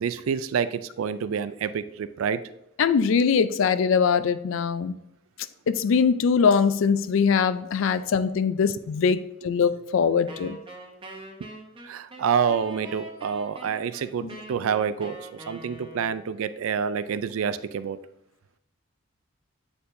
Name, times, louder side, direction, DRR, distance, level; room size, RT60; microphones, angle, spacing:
voice 1, 0.0-2.4 11.8-18.0, right 7 dB, 80° right, 0.4 m, -28 dB
voice 2, 2.8-5.0 5.7-10.6 14.2-14.3, left 6 dB, 65° left, 0.3 m, -22 dB
Wind instrument woodwind instrument, 10.3-16.3, right 1 dB, 25° right, 0.8 m, -43 dB
8.3 x 4.4 x 2.6 m
head